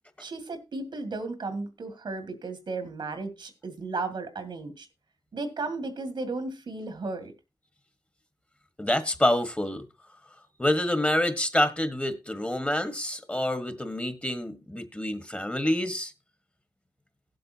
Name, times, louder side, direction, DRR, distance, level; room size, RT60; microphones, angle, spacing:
voice 1, 0.2-4.9 5.3-7.3, right 3 dB, 90° right, 2.0 m, -34 dB
voice 2, 8.8-9.8 10.6-16.1, left 1 dB, 15° left, 1.4 m, -27 dB
17.5 x 7.8 x 2.8 m
wide cardioid pair, 65°, 8 cm